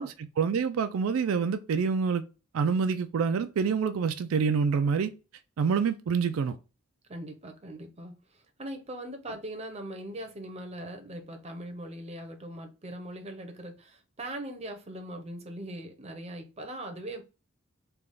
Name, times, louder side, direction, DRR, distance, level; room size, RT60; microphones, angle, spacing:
voice 1, 0.0-2.2 2.5-5.1 5.6-6.6, right 6 dB, 80° right, 0.4 m, -27 dB
voice 2, 7.1-17.2, right 1 dB, 30° right, 0.7 m, -40 dB
3.3 x 2.3 x 3.7 m
head